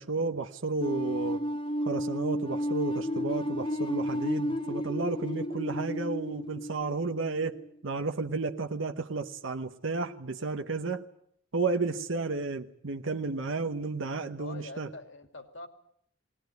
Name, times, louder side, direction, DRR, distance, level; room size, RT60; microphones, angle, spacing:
voice 1, 0.0-1.4 1.8-11.0 11.5-14.9, right 3 dB, 75° right, 1.0 m, -32 dB
sound 1, 0.8-7.7, equal, 25° left, 1.2 m, -32 dB
voice 2, 14.4-15.7, left 2 dB, 65° left, 2.6 m, -44 dB
20.5 x 19.5 x 9.3 m
head